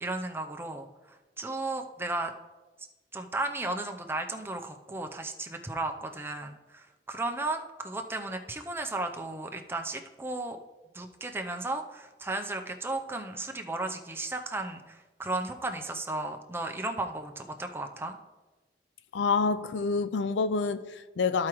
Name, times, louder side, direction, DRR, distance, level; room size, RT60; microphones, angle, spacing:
voice 1, 0.0-2.3 3.1-10.6 10.9-18.2, right 2 dB, 15° right, 0.5 m, -35 dB
voice 2, 19.1-21.5, left 4 dB, 90° left, 0.4 m, -27 dB
13.5 x 4.8 x 3.0 m
head